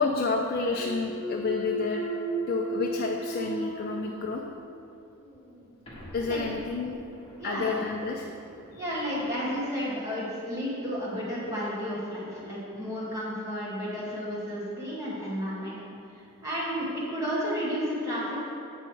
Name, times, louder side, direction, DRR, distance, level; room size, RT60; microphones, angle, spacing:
voice 1, 0.0-2.0 2.5-4.4 6.1-7.0 7.4-8.3 8.7-8.8, left 4 dB, 45° left, 2 dB, 0.4 m, -29 dB
Thump thud, 0.7-4.7 5.2-9.9, right 1 dB, 25° left, 1.5 m, -37 dB
voice 2, 7.4-7.8 8.8-15.8 16.4-18.4, equal, 15° right, -9 dB, 2.0 m, -32 dB
7.9 x 5.8 x 4.5 m, 2.6 s
head